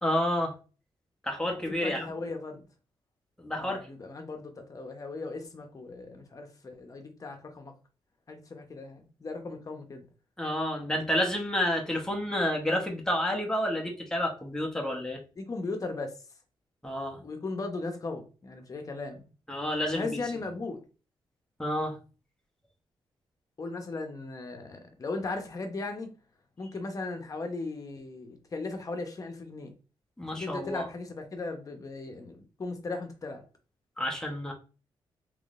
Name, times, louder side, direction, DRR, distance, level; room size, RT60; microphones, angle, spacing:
voice 1, 0.0-0.5 1.2-2.1 3.4-3.8 10.4-15.2 16.8-17.2 19.5-20.1 21.6-22.0 30.2-30.9 34.0-34.5, left 1 dB, 5° left, 1 dB, 0.9 m, -29 dB
voice 2, 1.8-2.6 3.5-7.7 8.3-10.1 15.3-16.1 17.2-19.3 19.9-20.8 23.6-26.1 26.6-29.7 30.3-33.4, left 3 dB, 40° left, 5 dB, 0.8 m, -37 dB
3.7 x 3.0 x 2.5 m, 0.34 s
cardioid pair, 100°, 9 cm